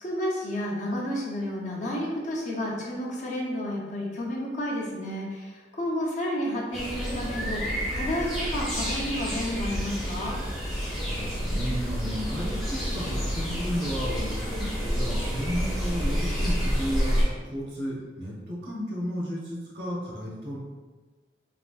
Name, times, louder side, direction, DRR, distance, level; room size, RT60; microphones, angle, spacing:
voice 1, 0.0-10.4, equal, 45° left, -3 dB, 0.6 m, -31 dB
sound 1, 6.7-17.2, equal, ahead, 0.6 m, -29 dB
voice 2, 10.8-20.6, equal, 75° right, -4 dB, 0.9 m, -33 dB
3.3 x 2.5 x 2.3 m, 1.3 s
head